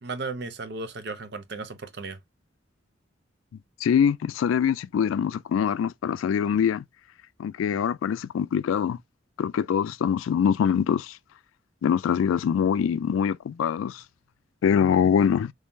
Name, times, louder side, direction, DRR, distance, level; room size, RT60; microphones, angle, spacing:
voice 1, 0.0-2.2, right 3 dB, 55° right, 0.6 m, -35 dB
voice 2, 3.8-6.8 7.4-9.0 9.4-11.2 11.8-14.0 14.6-15.5, left 7 dB, 90° left, 0.3 m, -24 dB
3.6 x 3.2 x 2.6 m
head